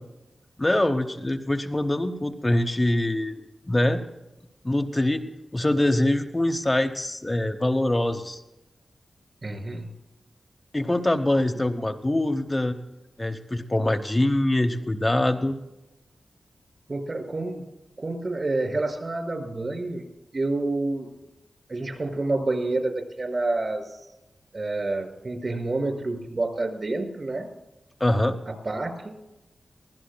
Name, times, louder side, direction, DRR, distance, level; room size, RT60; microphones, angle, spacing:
voice 1, 0.6-3.4 3.7-4.0 4.6-5.2 5.5-8.4 10.7-12.8 13.2-15.5 28.0-28.4, left 1 dB, 25° left, 5 dB, 0.9 m, -24 dB
voice 2, 9.4-9.9 16.9-17.6 18.0-20.0 20.3-21.1 21.7-23.8 24.5-27.5 28.6-29.2, right 2 dB, 50° right, 3 dB, 5.7 m, -28 dB
23.0 x 16.0 x 2.3 m, 0.98 s
cardioid pair, 45°, 0 cm